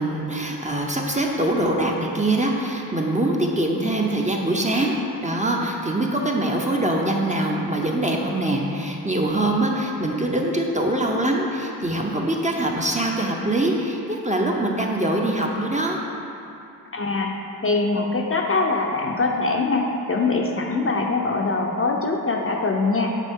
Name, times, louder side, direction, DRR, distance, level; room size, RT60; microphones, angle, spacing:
voice 1, 0.0-16.0, right 1 dB, 20° right, -1 dB, 0.6 m, -23 dB
voice 2, 16.9-17.3 17.6-23.2, left 3 dB, 35° left, 1 dB, 0.5 m, -23 dB
8.2 x 3.8 x 3.6 m, 2.7 s
wide cardioid pair, 75°, 40 cm